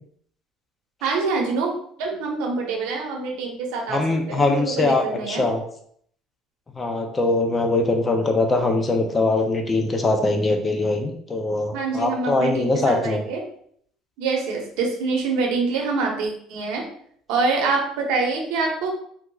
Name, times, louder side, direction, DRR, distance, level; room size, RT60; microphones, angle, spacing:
voice 1, 1.0-1.7 2.0-5.4 11.7-13.4 14.2-16.8 17.3-18.9, right 4 dB, 85° right, 1 dB, 0.8 m, -25 dB
voice 2, 3.9-5.6 6.7-13.2, left 2 dB, 15° left, 3 dB, 0.4 m, -22 dB
3.5 x 2.9 x 2.2 m, 0.64 s
cardioid pair, 170°, 0 cm